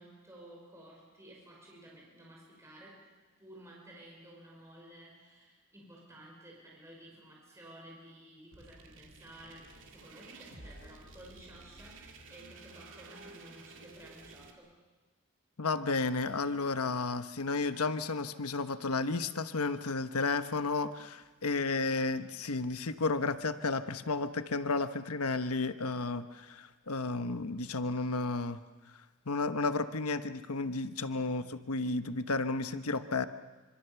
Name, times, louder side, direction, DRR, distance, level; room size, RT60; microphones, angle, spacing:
voice 1, 0.0-3.1 3.4-14.8 31.1-31.6, right 1 dB, 15° right, -3 dB, 5.6 m, -53 dB
sound 1, 8.5-14.5, right 3 dB, 60° right, 2.6 m, -53 dB
voice 2, 15.6-28.6 29.3-33.2, left 3 dB, 90° left, 10 dB, 1.1 m, -32 dB
25.5 x 25.5 x 7.0 m, 1.3 s
head